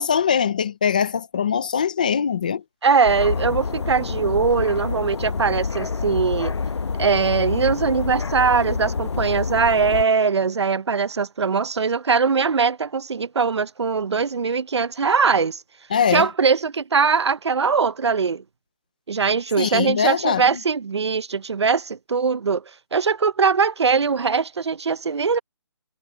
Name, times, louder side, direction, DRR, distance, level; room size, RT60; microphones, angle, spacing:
voice 1, 0.0-2.6 15.9-16.3 19.6-20.6, left 7 dB, 20° left, 0.6 m, -22 dB
voice 2, 2.8-6.6 7.0-15.6 16.1-18.4 19.1-22.6 22.9-25.4, right 5 dB, 80° right, 0.8 m, -21 dB
sound 1, 3.0-10.0, left 5 dB, 85° left, 1.1 m, -27 dB
hypercardioid pair, 180°, 14 cm